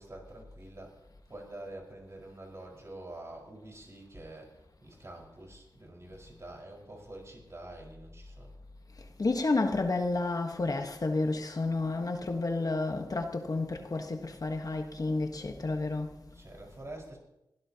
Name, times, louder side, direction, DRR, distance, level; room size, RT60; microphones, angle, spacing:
voice 1, 0.0-8.5 16.0-17.2, right 1 dB, 40° right, 5.0 m, -47 dB
voice 2, 9.0-16.1, left 3 dB, 50° left, 1.4 m, -31 dB
23.0 x 16.5 x 2.9 m
wide cardioid pair, 100°, 8 cm